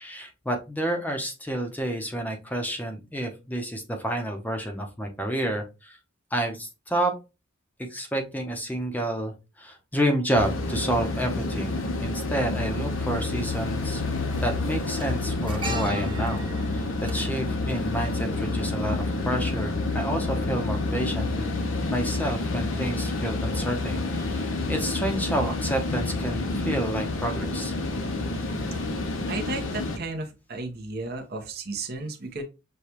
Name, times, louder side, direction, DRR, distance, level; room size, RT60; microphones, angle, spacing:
voice 1, 0.0-6.0 6.3-7.2 7.8-9.3 9.6-11.7 12.0-14.0 14.4-16.5 16.7-21.5 21.9-27.7, right 1 dB, 10° left, 4 dB, 0.7 m, -29 dB
sound 1, 10.3-30.0, left 2 dB, 70° left, 0.7 m, -29 dB
sound 2, 12.5-12.6 13.8-14.1 14.3-18.6 18.9-19.1, right 1 dB, 25° right, 1.0 m, -39 dB
voice 2, 29.3-32.4, right 3 dB, 50° right, 4 dB, 0.8 m, -34 dB
6.5 x 2.3 x 2.9 m, 0.28 s
head